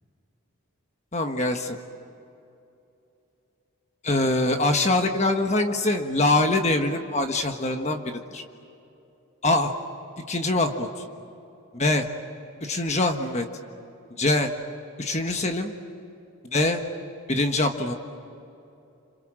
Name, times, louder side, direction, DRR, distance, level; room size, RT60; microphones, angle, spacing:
voice 1, 1.1-1.8 4.0-8.4 9.4-9.7 10.3-10.9 11.7-12.1 12.6-13.5 14.2-14.5 15.0-15.7 16.5-16.8 17.3-17.9, left 2 dB, 30° left, 5 dB, 1.4 m, -23 dB
28.5 x 27.0 x 7.7 m, 2.8 s
head